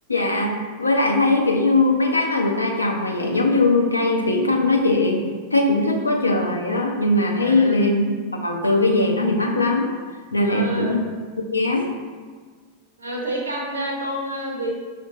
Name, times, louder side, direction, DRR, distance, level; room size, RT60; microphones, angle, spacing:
voice 1, 0.1-0.5 0.8-5.2 5.5-9.9 10.3-11.0 11.4-11.9, left 2 dB, 80° left, 2 dB, 0.5 m, -20 dB
voice 2, 7.4-7.9 10.4-11.0 13.0-14.8, right 1 dB, 75° right, -1 dB, 0.7 m, -29 dB
6.0 x 2.1 x 2.7 m, 1.5 s
figure-of-eight pair, 90°, 0 cm